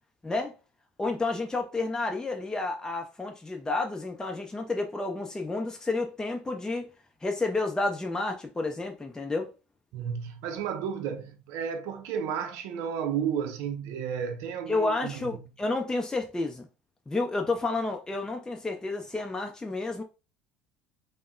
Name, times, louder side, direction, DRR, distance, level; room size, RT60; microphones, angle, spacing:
voice 1, 1.0-6.9 7.2-9.5 14.7-16.7 17.1-20.0, left 3 dB, 15° left, 0.6 m, -30 dB
voice 2, 9.9-15.5, right 7 dB, 65° right, 0.5 m, -32 dB
3.4 x 2.1 x 2.5 m
hypercardioid pair, 70°, 5 cm